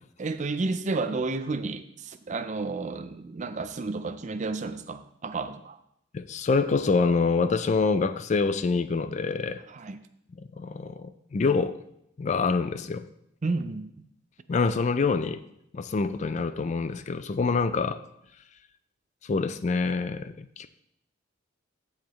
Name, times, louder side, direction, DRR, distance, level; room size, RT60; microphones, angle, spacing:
voice 1, 0.2-5.8 9.7-10.0 13.4-14.0, right 3 dB, 40° right, 11 dB, 0.5 m, -31 dB
voice 2, 6.1-9.6 10.4-11.7 12.2-13.1 14.5-15.4 15.7-18.0 19.2-20.7, left 4 dB, 35° left, 12 dB, 0.3 m, -26 dB
14.5 x 4.8 x 3.0 m, 0.77 s
head